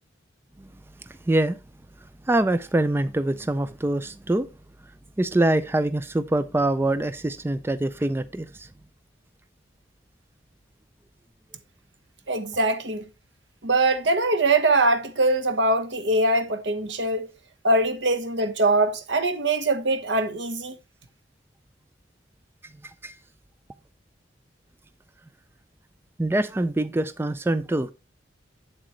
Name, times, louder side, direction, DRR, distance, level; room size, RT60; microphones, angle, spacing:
voice 1, 1.0-1.6 2.3-4.5 5.2-8.7 22.8-23.1 26.2-27.9, right 1 dB, 15° right, 0.3 m, -24 dB
voice 2, 12.3-13.1 13.6-17.3 17.6-20.8, right 2 dB, 75° right, 1.1 m, -22 dB
7.9 x 7.5 x 3.1 m
head